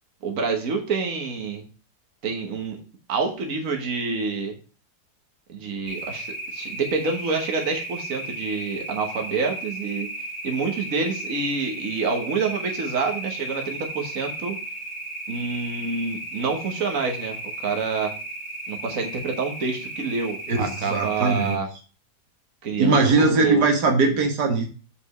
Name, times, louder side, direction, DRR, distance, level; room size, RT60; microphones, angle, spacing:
voice 1, 0.2-1.6 2.2-2.8 3.1-4.6 5.5-10.1 10.4-14.6 15.3-18.1 18.7-21.7 22.6-23.7, right 4 dB, 55° right, 2 dB, 1.7 m, -27 dB
sound 1, 5.9-21.6, right 2 dB, 50° left, 2.6 m, -35 dB
voice 2, 20.5-21.6 22.8-24.7, right 3 dB, 80° right, 3 dB, 2.1 m, -20 dB
5.3 x 5.2 x 6.4 m, 0.35 s
omnidirectional pair, 1.7 m